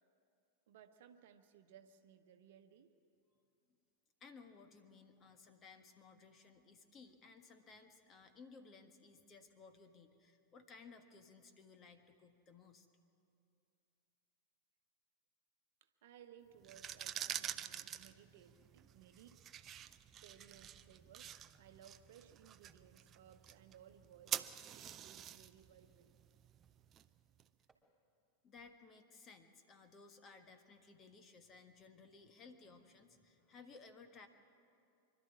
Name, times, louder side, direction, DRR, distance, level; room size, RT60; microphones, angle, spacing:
voice 1, 0.7-2.9 15.8-19.4 20.2-24.5 24.7-26.1, right 9 dB, 55° right, 7 dB, 1.1 m, -62 dB
voice 2, 4.2-12.9 28.4-34.3, left 4 dB, 25° left, 7 dB, 1.7 m, -59 dB
sound 1, 16.6-27.4, right 10 dB, 30° right, 0.6 m, -47 dB
sound 2, 19.7-20.1 20.6-21.1 21.5-22.0 22.7-23.1 23.8-24.1 25.6-25.9 26.6-27.0 27.7-27.9 28.6-28.9, right 4 dB, 10° right, 3.4 m, -74 dB
25.5 x 12.5 x 9.6 m, 2.6 s
figure-of-eight pair, 90°, 0 cm